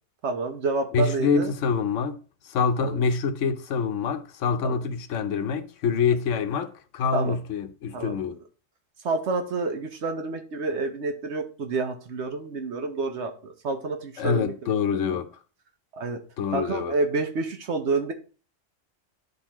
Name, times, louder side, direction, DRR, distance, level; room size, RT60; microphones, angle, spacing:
voice 1, 0.2-1.5 2.8-3.0 4.6-4.8 7.1-7.4 7.9-8.4 9.0-14.7 15.1-15.2 15.9-16.2 16.5-18.1, right 3 dB, 65° right, 1.2 m, -29 dB
voice 2, 0.9-2.2 2.4-8.4 14.2-15.3 16.4-17.0, left 5 dB, 85° left, 1.0 m, -26 dB
11.5 x 4.0 x 2.9 m
omnidirectional pair, 1.3 m